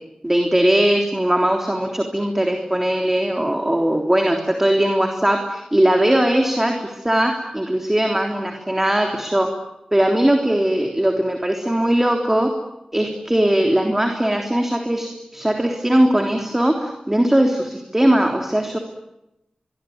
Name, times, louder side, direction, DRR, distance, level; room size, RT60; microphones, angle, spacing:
voice 1, 0.2-9.5 9.9-12.5 12.9-18.8, right 1 dB, 15° right, 3 dB, 3.4 m, -19 dB
24.0 x 23.5 x 9.6 m, 0.90 s
wide cardioid pair, 70°, 2 cm